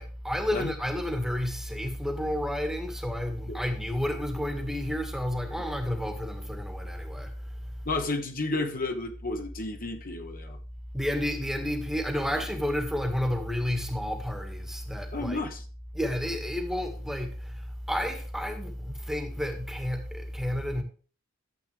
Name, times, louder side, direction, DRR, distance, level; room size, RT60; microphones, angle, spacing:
voice 1, 0.0-7.6 10.9-15.4 15.9-20.8, equal, ahead, 1.8 m, -31 dB
voice 2, 7.8-10.6 15.1-15.6, left 2 dB, 45° left, 1.2 m, -32 dB
12.0 x 8.0 x 3.4 m
head